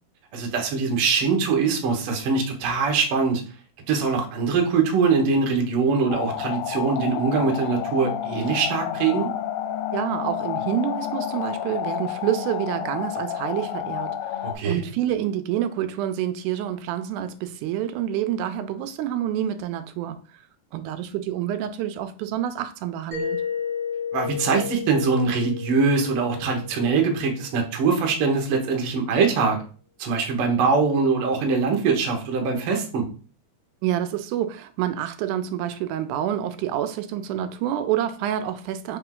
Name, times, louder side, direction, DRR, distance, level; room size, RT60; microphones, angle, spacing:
voice 1, 0.3-3.4 3.9-9.3 14.4-14.8 24.1-29.6 30.0-33.0, right 5 dB, 65° right, 1.5 m, -22 dB
sound 1, 6.1-14.5, left 10 dB, 80° left, 1.7 m, -30 dB
voice 2, 9.9-14.2 14.7-20.2 20.7-23.4 33.8-39.0, right 11 dB, 85° right, 2.0 m, -27 dB
Mallet percussion, 23.1-27.7, left 7 dB, 45° right, 1.8 m, -33 dB
4.3 x 3.4 x 3.6 m
omnidirectional pair, 3.5 m